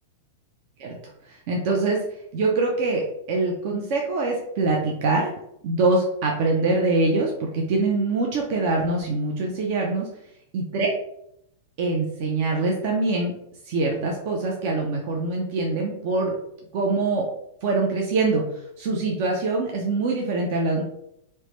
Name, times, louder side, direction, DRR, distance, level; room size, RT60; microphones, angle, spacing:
voice 1, 1.3-2.0 2.3-5.3 5.6-10.1 10.5-10.9 11.8-13.3 13.6-16.4 16.7-17.3 17.6-18.4 18.8-20.8, right 3 dB, 55° right, -1 dB, 0.5 m, -24 dB
3.1 x 2.1 x 3.0 m, 0.77 s
hypercardioid pair, 120°, 0 cm